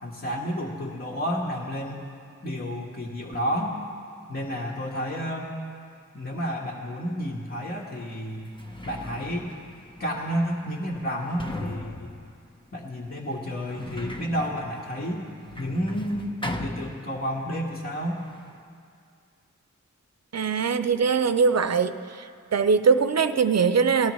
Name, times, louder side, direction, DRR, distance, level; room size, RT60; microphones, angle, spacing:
voice 1, 0.0-2.0 2.4-3.8 4.3-5.5 6.1-8.5 8.8-9.5 10.0-12.1 12.7-15.3 15.6-16.3 16.6-18.2, equal, 45° left, -4 dB, 1.4 m, -30 dB
Sliding door, 7.6-7.7 8.3-17.5 17.8-18.6, left 1 dB, 15° left, 0.9 m, -38 dB
voice 2, 20.3-21.9 22.5-24.1, right 5 dB, 55° right, 11 dB, 0.5 m, -21 dB
19.0 x 12.5 x 3.1 m, 2.4 s
wide cardioid pair, 45°, 31 cm